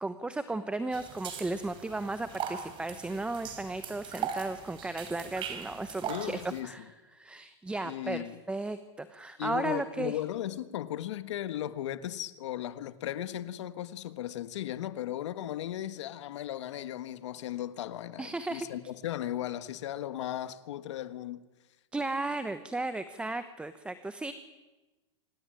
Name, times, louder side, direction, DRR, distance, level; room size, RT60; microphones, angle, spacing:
voice 1, 0.0-10.2 18.2-18.7 21.9-24.3, right 2 dB, 5° right, 1.0 m, -35 dB
sound 1, 0.9-6.6, right 8 dB, 35° right, 3.7 m, -40 dB
voice 2, 6.1-6.8 7.8-8.4 9.4-21.4, left 12 dB, 85° left, 1.5 m, -36 dB
26.0 x 18.0 x 9.1 m
supercardioid pair, 140°, 15 cm